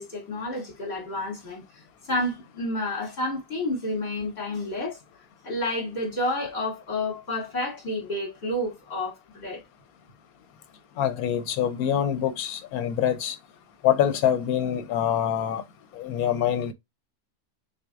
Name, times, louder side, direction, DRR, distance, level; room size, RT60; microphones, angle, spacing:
voice 1, 0.0-5.0 5.4-9.6, left 1 dB, 45° left, 2.5 m, -30 dB
voice 2, 11.0-13.4 13.8-15.6 15.9-16.7, left 10 dB, 80° left, 1.2 m, -25 dB
6.2 x 2.4 x 2.4 m
omnidirectional pair, 1.5 m